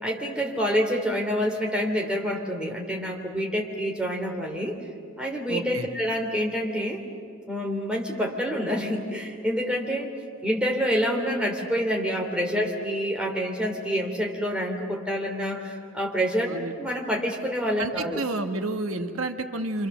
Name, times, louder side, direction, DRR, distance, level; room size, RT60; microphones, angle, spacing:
voice 1, 0.0-4.7 5.2-7.0 7.5-10.1 10.4-16.5 16.7-18.2, equal, 5° right, -1 dB, 2.8 m, -27 dB
voice 2, 5.5-5.9 16.5-16.7 17.8-19.9, right 2 dB, 85° right, 7 dB, 1.3 m, -30 dB
28.0 x 26.0 x 7.1 m, 2.2 s
head